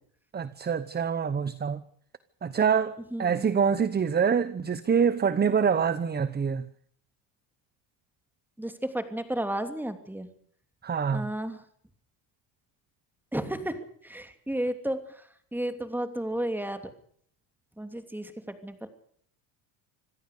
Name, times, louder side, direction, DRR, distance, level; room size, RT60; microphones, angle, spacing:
voice 1, 0.3-1.8 2.4-6.6 10.8-11.3, right 6 dB, 20° right, 0.9 m, -25 dB
voice 2, 3.1-3.5 8.6-10.3 11.1-11.6 13.3-13.8 14.0-15.0 15.5-16.8 17.8-18.9, right 1 dB, 5° right, 2.9 m, -32 dB
26.0 x 16.5 x 6.7 m
cardioid pair, 115°, 49 cm